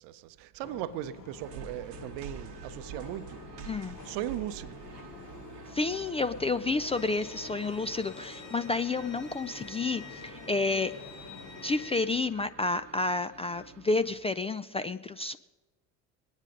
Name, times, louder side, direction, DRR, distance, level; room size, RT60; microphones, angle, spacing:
voice 1, 0.0-3.4 4.0-4.8, right 13 dB, 60° right, 0.8 m, -38 dB
sound 1, 0.6-11.9, left 5 dB, 45° left, 1.7 m, -49 dB
sound 2, 1.4-14.2, right 6 dB, 85° right, 1.1 m, -48 dB
voice 2, 3.7-4.0 5.7-10.9 11.6-15.4, left 3 dB, 15° left, 0.4 m, -30 dB
Bowed string instrument, 6.9-12.0, left 5 dB, 85° left, 2.4 m, -49 dB
20.5 x 9.7 x 5.3 m
hypercardioid pair, 65°, 46 cm